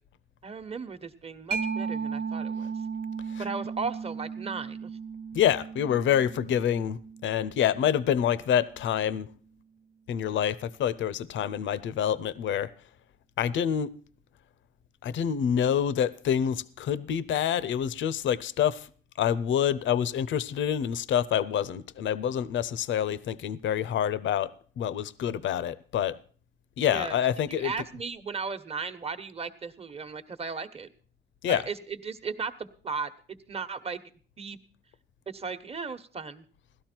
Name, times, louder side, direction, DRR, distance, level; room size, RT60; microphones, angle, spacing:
voice 1, 0.4-2.7 3.4-4.9 26.9-27.2 27.6-30.9 31.5-34.0 34.4-34.6 35.3-36.4, right 5 dB, 30° right, 1.1 m, -36 dB
Mallet percussion, 1.5-8.8, right 5 dB, 65° right, 1.1 m, -36 dB
voice 2, 5.3-9.3 10.1-12.7 13.4-13.9 15.0-18.9 19.2-24.5 24.8-26.2 26.8-27.7 31.4-31.6, left 9 dB, 70° left, 0.7 m, -27 dB
17.0 x 12.5 x 4.5 m
cardioid pair, 90°, 20 cm